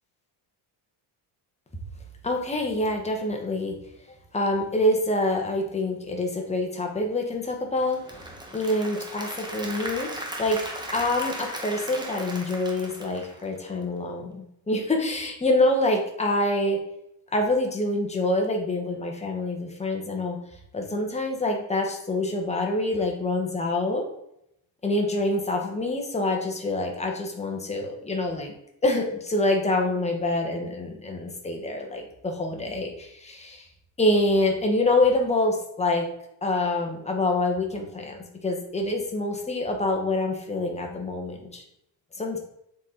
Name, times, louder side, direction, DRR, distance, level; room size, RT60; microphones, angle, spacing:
voice 1, 2.2-3.8 4.3-8.0 8.5-10.1 10.4-10.6 10.9-16.8 17.3-20.4 20.7-24.0 24.8-28.5 28.8-33.7 34.0-36.1 36.4-41.6 42.2-42.4, left 2 dB, 15° left, 2 dB, 1.1 m, -26 dB
Applause / Crowd, 7.8-13.8, right 1 dB, 10° right, 1.0 m, -37 dB
7.2 x 4.3 x 3.8 m, 0.78 s
cardioid pair, 145°, 47 cm